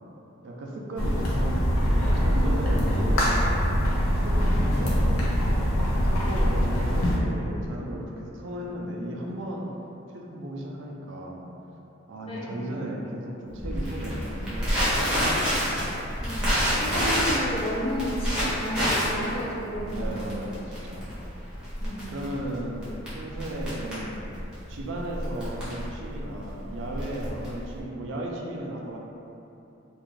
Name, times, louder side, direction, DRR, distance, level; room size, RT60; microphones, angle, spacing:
voice 1, 0.4-3.3 4.1-9.7 10.1-11.5 12.1-15.6 19.7-21.1 22.1-24.3 24.7-29.0, right 1 dB, 60° right, -1 dB, 0.3 m, -35 dB
sound 1, 1.0-7.2, equal, 90° left, 0.5 m, -23 dB
voice 2, 12.3-12.6 16.2-16.5 16.8-20.1 21.8-22.1, equal, 25° left, -5 dB, 0.4 m, -32 dB
Crackle, 13.6-27.8, equal, 5° right, 0.7 m, -28 dB
2.5 x 2.3 x 3.1 m, 2.8 s
head